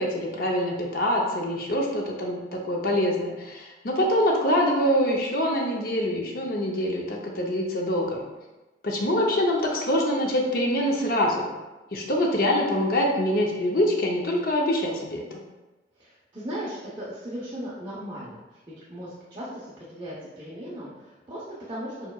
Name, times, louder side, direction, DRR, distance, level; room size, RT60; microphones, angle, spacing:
voice 1, 0.0-8.2 8.8-11.5 11.9-15.4, equal, 50° left, 0 dB, 0.6 m, -25 dB
voice 2, 15.9-18.6 18.9-22.1, equal, 25° right, -9 dB, 0.8 m, -37 dB
5.1 x 4.5 x 2.3 m, 1.1 s
head